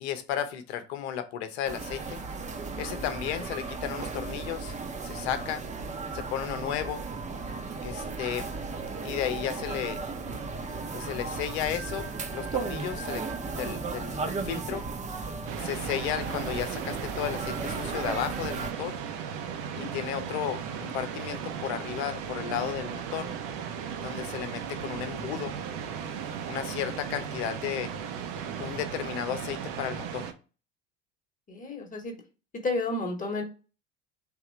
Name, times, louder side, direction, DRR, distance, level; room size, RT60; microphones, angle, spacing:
voice 1, 0.0-2.2 2.8-4.7 5.0-5.6 6.1-7.0 7.8-8.5 9.0-10.0 10.9-13.2 13.6-14.9 15.6-19.0 19.8-23.3 24.0-25.6 26.5-27.9 28.6-30.3, left 10 dB, 60° left, 10 dB, 0.8 m, -34 dB
sound 1, 1.7-18.7, right 4 dB, 20° right, 0.6 m, -35 dB
voice 2, 2.8-3.1 19.7-19.9 31.5-32.2 32.6-33.4, left 2 dB, 20° left, 4 dB, 1.0 m, -32 dB
sound 2, 15.5-30.3, right 7 dB, 55° right, 0.7 m, -36 dB
3.6 x 2.8 x 4.4 m, 0.34 s
figure-of-eight pair, 70°, 36 cm